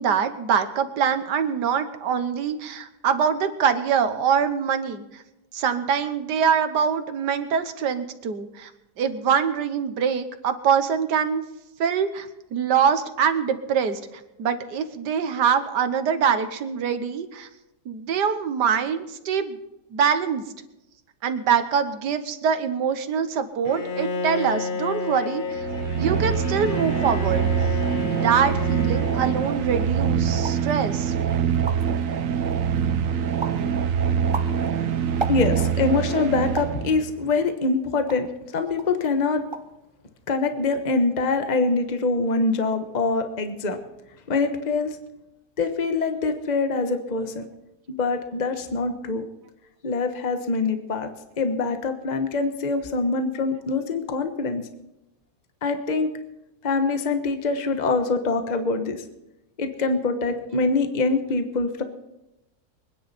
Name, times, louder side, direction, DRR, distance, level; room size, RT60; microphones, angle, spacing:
voice 1, 0.0-5.2 5.5-8.7 9.0-11.4 11.8-14.0 14.4-17.5 17.9-19.6 19.9-20.4 21.2-25.7 26.0-27.5 28.0-31.1, right 7 dB, 80° right, 9 dB, 1.7 m, -24 dB
Bowed string instrument, 23.7-29.9, left 4 dB, 55° left, 0.5 m, -31 dB
sound 1, 25.5-37.1, right 7 dB, 60° right, 1.1 m, -24 dB
sound 2, 30.4-30.7 31.2-31.3 31.5-32.0 32.5-33.0 33.4-33.7 34.1-35.8 36.6-36.8 37.5-38.4 38.8-39.0 39.3-39.8 40.1-40.6, right 3 dB, 25° right, 0.6 m, -35 dB
voice 2, 35.3-39.4 40.3-43.8 44.3-45.0 45.6-47.5 47.9-49.2 49.8-51.1 51.4-54.6 55.6-56.1 56.6-59.0 59.6-61.8, left 3 dB, 30° left, 7 dB, 1.1 m, -24 dB
24.5 x 10.0 x 4.2 m, 0.92 s
omnidirectional pair, 1.8 m